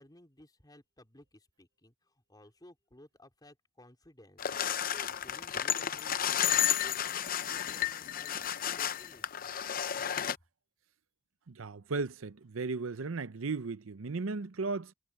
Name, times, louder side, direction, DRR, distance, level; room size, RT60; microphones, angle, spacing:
voice 1, 0.0-6.4 6.6-9.6, left 1 dB, 20° left, 4.0 m, -58 dB
sound 1, 4.4-10.4, left 10 dB, 45° left, 0.6 m, -32 dB
voice 2, 11.5-14.9, right 4 dB, 75° right, 0.7 m, -35 dB
head